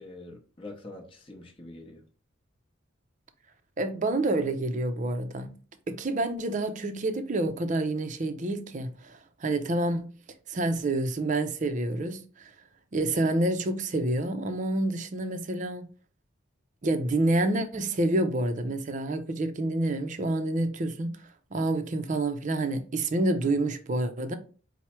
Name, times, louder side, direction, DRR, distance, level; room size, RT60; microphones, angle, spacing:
voice 1, 0.0-2.0, left 2 dB, 25° left, 0.7 m, -45 dB
voice 2, 3.8-5.6 5.9-10.1 10.5-12.5 12.9-15.9 16.8-21.2 21.5-24.4, right 2 dB, 35° right, 0.5 m, -28 dB
4.6 x 2.1 x 4.3 m
head